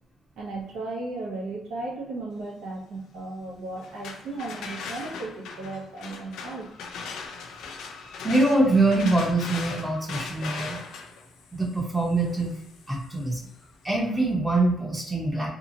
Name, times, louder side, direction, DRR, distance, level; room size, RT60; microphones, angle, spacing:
voice 1, 0.4-6.7, right 2 dB, 80° right, -2 dB, 0.8 m, -35 dB
sound 1, 3.8-13.6, left 5 dB, 85° left, 0.4 m, -39 dB
voice 2, 8.2-10.8 11.6-12.5 12.9-13.4 13.8-15.5, right 2 dB, 15° right, -3 dB, 0.8 m, -24 dB
2.8 x 2.3 x 2.7 m, 0.73 s
cardioid pair, 90°, 0 cm